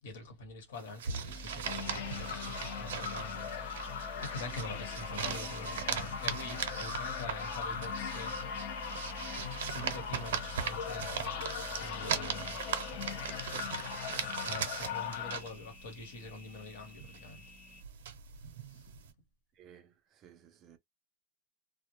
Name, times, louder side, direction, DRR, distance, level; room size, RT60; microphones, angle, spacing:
voice 1, 0.0-8.4 9.6-11.4 11.8-12.6 14.2-17.5 18.6-19.0, left 2 dB, 75° left, 1.1 m, -45 dB
sound 1, 0.8-16.7 16.9-19.1, right 8 dB, 85° right, 0.6 m, -40 dB
sound 2, 1.3-17.8, equal, 25° left, 0.9 m, -49 dB
sound 3, 1.6-15.4, left 7 dB, 50° left, 0.5 m, -40 dB
voice 2, 19.5-20.8, right 8 dB, 25° right, 0.3 m, -57 dB
2.1 x 2.0 x 2.9 m
supercardioid pair, 180°, 0 cm